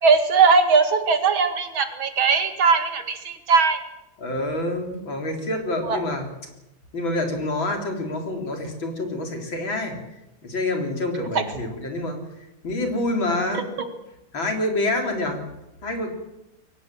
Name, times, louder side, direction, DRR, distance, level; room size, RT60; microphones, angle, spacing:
voice 1, 0.0-3.8 5.9-6.0, right 5 dB, 80° right, 7 dB, 2.8 m, -19 dB
voice 2, 4.2-6.3 6.9-10.0 10.4-12.2 12.6-13.7 14.3-15.4 15.8-16.1, left 2 dB, 75° left, 3 dB, 4.6 m, -27 dB
22.0 x 18.5 x 7.7 m, 0.94 s
omnidirectional pair, 2.1 m